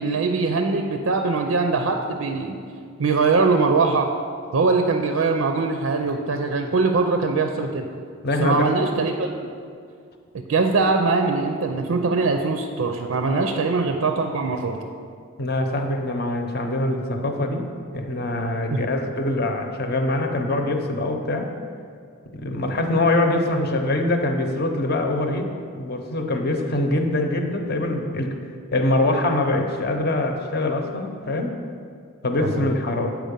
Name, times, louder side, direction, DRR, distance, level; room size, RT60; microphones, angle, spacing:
voice 1, 0.0-2.6 3.0-4.1 4.5-7.9 8.4-9.3 10.3-14.8 18.7-18.8 32.4-32.7, right 4 dB, 90° right, 5 dB, 0.5 m, -22 dB
voice 2, 8.2-8.7 13.3-13.5 15.4-17.6 17.9-21.5 22.3-25.5 25.7-28.3 28.7-31.5 32.2-33.1, left 2 dB, 50° left, 4 dB, 0.8 m, -23 dB
7.5 x 4.7 x 5.3 m, 2.3 s
head